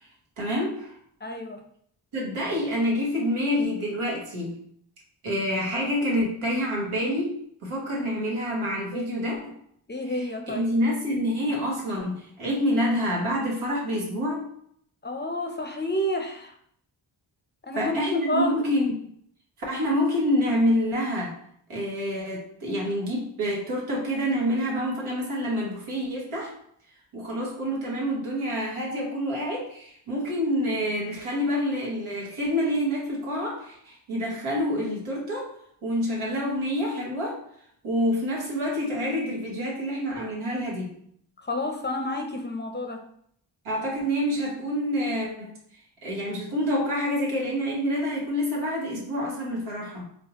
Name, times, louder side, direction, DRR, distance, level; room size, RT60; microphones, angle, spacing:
voice 1, 0.4-1.0 2.1-4.6 5.2-9.5 10.1-14.5 17.7-18.9 19.7-21.3 21.7-26.5 27.1-35.5 35.8-37.4 37.8-40.9 43.6-45.5 46.0-50.0, equal, 85° right, -3 dB, 1.2 m, -27 dB
voice 2, 1.2-1.6 8.9-9.3 9.9-10.7 15.0-16.5 17.6-18.5 41.4-43.0, left 1 dB, 20° left, 3 dB, 0.5 m, -30 dB
4.2 x 2.0 x 2.9 m, 0.66 s
cardioid pair, 40°, 49 cm